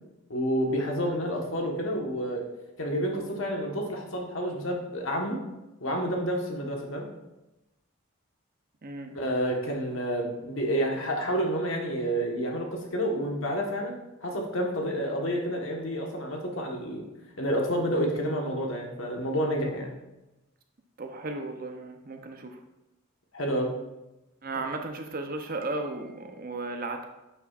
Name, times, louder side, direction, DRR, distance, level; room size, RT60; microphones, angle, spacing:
voice 1, 0.3-2.4 2.8-5.4 5.8-7.1 9.1-17.1 17.4-19.9 23.3-23.7, equal, 65° left, 1 dB, 1.4 m, -29 dB
voice 2, 8.8-9.1 21.0-22.6 24.4-27.0, right 2 dB, 45° right, 5 dB, 0.7 m, -35 dB
9.6 x 6.0 x 2.5 m, 0.98 s
head